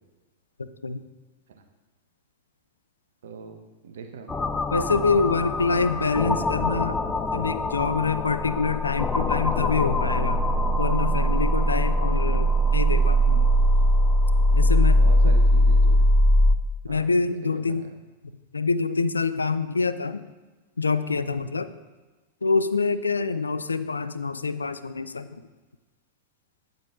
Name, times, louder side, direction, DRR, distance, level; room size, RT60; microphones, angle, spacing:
voice 1, 0.6-1.0 4.7-10.4 10.8-13.4 14.6-15.7 16.8-17.9 18.5-20.2 20.8-21.7 22.4-25.3, left 4 dB, 75° left, 13 dB, 0.3 m, -26 dB
voice 2, 3.2-4.4 4.8-5.1 5.7-5.9 14.5-16.1 16.9-17.1 17.4-17.6, right 5 dB, 60° right, 5 dB, 0.9 m, -41 dB
sound 1, 4.3-16.6, equal, 10° left, 0.4 m, -21 dB
9.2 x 7.7 x 2.5 m, 1.2 s
figure-of-eight pair, 90°, 0 cm